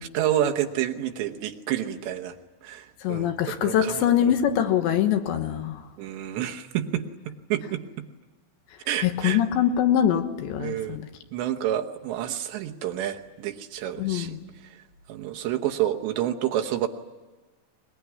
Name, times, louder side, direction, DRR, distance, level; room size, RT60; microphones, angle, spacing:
voice 1, 0.0-2.4 2.6-4.3 6.0-8.1 8.9-9.4 10.6-11.0 11.3-14.4 14.6-14.8 15.1-16.9, right 11 dB, 75° right, 4 dB, 3.0 m, -29 dB
voice 2, 3.0-5.8 9.0-11.1 14.0-14.4, left 10 dB, 75° left, 7 dB, 3.4 m, -23 dB
22.0 x 21.5 x 9.7 m, 1.3 s
omnidirectional pair, 5.5 m